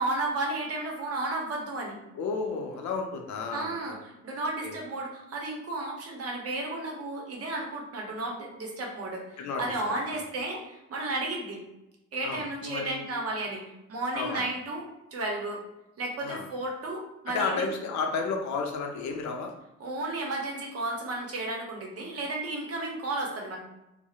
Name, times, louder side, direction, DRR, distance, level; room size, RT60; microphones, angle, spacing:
voice 1, 0.0-2.0 3.5-11.6 12.1-14.8 15.1-15.6 16.0-17.7 19.8-23.6, right 2 dB, 50° right, -1 dB, 0.8 m, -33 dB
voice 2, 2.1-4.0 4.6-4.8 9.4-9.8 10.1-10.2 12.2-13.0 14.1-14.5 16.2-16.5 17.3-19.5, left 4 dB, 65° left, 3 dB, 0.5 m, -32 dB
2.7 x 2.0 x 2.3 m, 0.91 s
cardioid pair, 90°, 30 cm